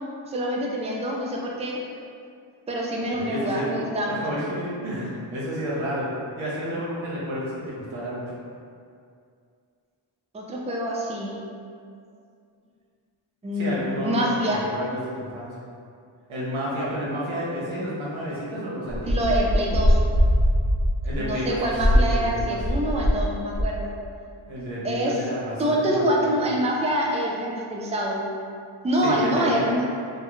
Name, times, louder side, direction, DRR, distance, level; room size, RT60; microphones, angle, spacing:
voice 1, 0.3-1.8 2.7-4.4 10.3-11.4 13.4-14.6 19.1-20.0 21.2-23.9 24.8-25.2 25.6-28.3 28.8-29.9, equal, 15° right, -2 dB, 0.3 m, -26 dB
voice 2, 3.0-3.8 4.1-8.2 13.5-15.6 16.3-19.2 21.0-22.6 24.5-26.3 29.0-29.7, equal, 70° right, -7 dB, 0.8 m, -30 dB
sound 1, 18.9-23.3 23.5-23.9, equal, 45° right, 0.7 m, -22 dB
2.3 x 2.1 x 3.0 m, 2.4 s
cardioid pair, 50°, 49 cm